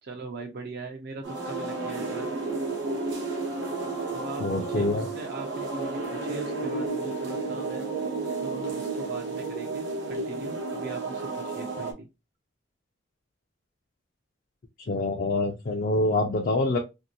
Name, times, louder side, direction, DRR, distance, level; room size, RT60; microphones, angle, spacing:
voice 1, 0.0-2.3 4.1-7.8 8.4-12.1, right 3 dB, 55° right, 2 dB, 0.5 m, -40 dB
sound 1, 1.2-11.9, right 3 dB, 80° right, 0.8 m, -32 dB
voice 2, 4.4-5.1 14.9-16.8, left 2 dB, 50° left, 2 dB, 0.4 m, -25 dB
2.7 x 2.5 x 2.7 m, 0.25 s
head